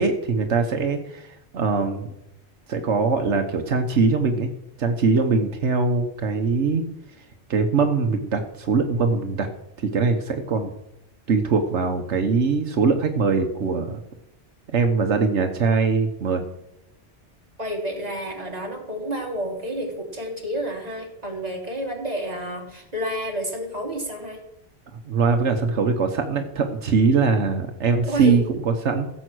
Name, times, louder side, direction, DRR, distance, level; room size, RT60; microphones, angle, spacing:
voice 1, 0.0-2.1 2.7-4.5 4.8-6.8 7.5-9.5 9.8-10.7 11.3-14.0 14.7-16.4 25.0-29.1, right 4 dB, 80° right, 5 dB, 1.4 m, -22 dB
voice 2, 17.6-24.4 28.0-28.4, equal, 35° right, 0 dB, 3.0 m, -30 dB
15.5 x 7.7 x 6.2 m, 0.84 s
omnidirectional pair, 1.2 m